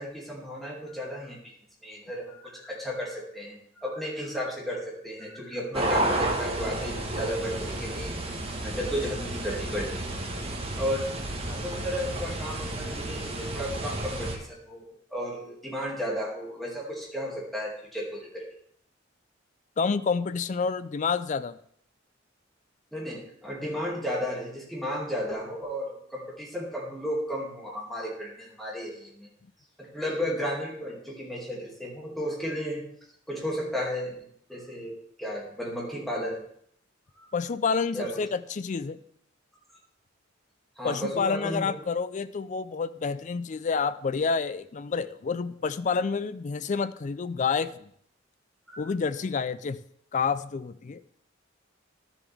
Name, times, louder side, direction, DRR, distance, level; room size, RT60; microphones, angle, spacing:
voice 1, 0.0-1.4 1.8-8.1 8.6-10.0 10.8-11.0 11.4-14.8 15.1-18.4 22.9-29.3 29.8-32.8 33.3-34.1 34.5-36.4 37.2-37.3 37.9-38.1 40.8-41.7 48.7-48.8, equal, ahead, -4 dB, 2.4 m, -33 dB
sound 1, 5.7-14.4, right 1 dB, 30° right, 1.3 m, -31 dB
voice 2, 19.8-21.6 37.3-39.0 40.8-47.9 48.8-49.8 50.1-51.0, left 5 dB, 40° left, 15 dB, 0.4 m, -29 dB
12.5 x 7.1 x 3.5 m, 0.66 s
head